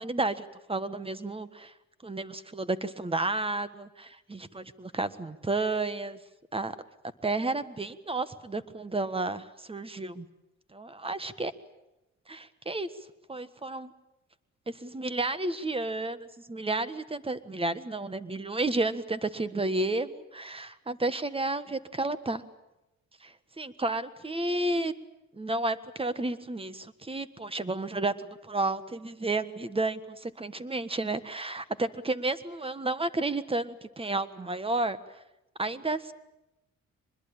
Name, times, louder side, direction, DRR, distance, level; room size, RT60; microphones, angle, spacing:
voice 1, 0.0-1.7 2.0-6.2 6.5-6.7 7.2-10.3 10.7-11.5 12.3-12.9 13.3-13.9 14.7-22.4 23.2-24.9 25.4-35.0 35.6-36.1, right 2 dB, 20° right, 14 dB, 1.5 m, -31 dB
24.0 x 21.0 x 8.8 m, 0.93 s
cardioid pair, 90°, 30 cm